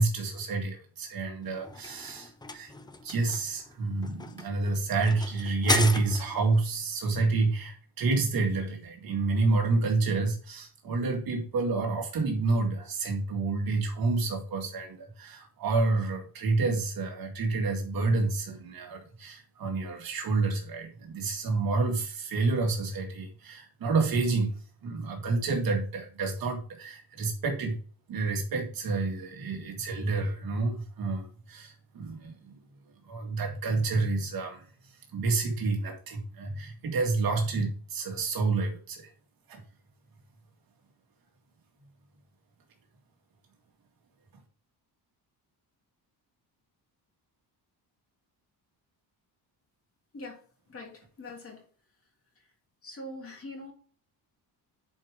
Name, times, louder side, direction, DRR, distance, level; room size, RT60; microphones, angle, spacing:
voice 1, 0.0-2.7 3.0-27.8 28.1-32.6 33.0-39.1 39.5-39.6, right 3 dB, 55° right, 2.3 m, -29 dB
sound 1, 1.4-6.5, left 3 dB, 10° left, 0.5 m, -35 dB
voice 2, 50.1-51.7 52.3-52.5 52.8-53.7, left 1 dB, 35° left, 2.9 m, -43 dB
10.5 x 5.1 x 3.7 m
cardioid pair, 160°, 41 cm